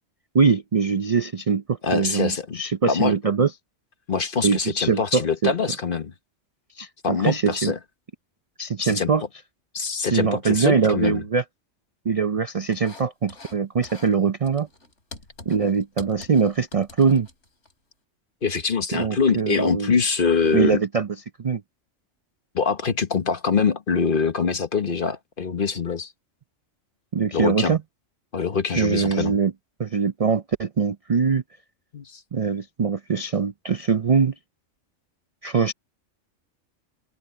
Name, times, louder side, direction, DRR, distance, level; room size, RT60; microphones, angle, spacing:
voice 1, 0.3-3.5 4.4-5.5 6.7-7.7 8.6-9.2 10.0-11.4 12.1-14.7 15.5-17.3 18.9-19.9 20.5-21.1 21.4-21.6 27.1-27.8 28.7-29.5 29.8-31.4 32.3-34.3 35.4-35.7, right 5 dB, 45° right, 0.4 m, -22 dB
voice 2, 1.8-2.6 2.9-3.1 4.1-6.1 7.0-7.8 8.8-9.1 9.7-11.2 18.4-20.8 22.5-26.1 27.3-27.7 28.3-29.3 31.9-32.2, left 5 dB, 45° left, 1.3 m, -24 dB
sound 1, 12.7-13.6 13.8-14.2 14.4-17.7, left 2 dB, 65° left, 3.9 m, -45 dB
open air
omnidirectional pair, 1.3 m